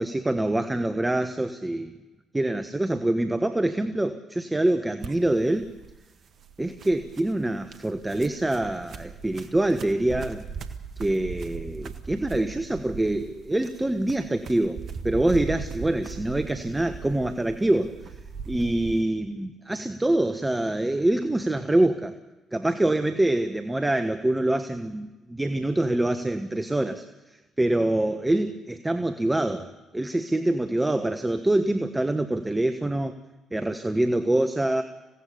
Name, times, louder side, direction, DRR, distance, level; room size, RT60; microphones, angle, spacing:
voice 1, 0.0-1.9 2.3-5.7 6.6-10.5 11.0-14.8 15.0-18.1 18.5-22.1 22.5-29.7 29.9-33.1 33.5-34.8, right 1 dB, 15° right, 8 dB, 1.3 m, -25 dB
sound 1, 5.0-19.0, right 5 dB, 55° right, 1.5 m, -39 dB
27.0 x 17.0 x 6.9 m, 1.1 s
figure-of-eight pair, 45°, 0 cm